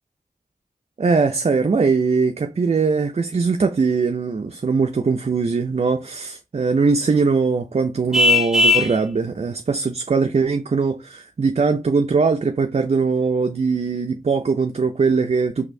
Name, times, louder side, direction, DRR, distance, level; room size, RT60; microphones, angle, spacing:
voice 1, 1.0-15.7, right 4 dB, 45° right, 0.4 m, -21 dB
Vehicle horn car horn honking, 8.1-9.0, left 3 dB, ahead, 0.7 m, -16 dB
4.1 x 2.6 x 2.6 m
wide cardioid pair, 40°, 15 cm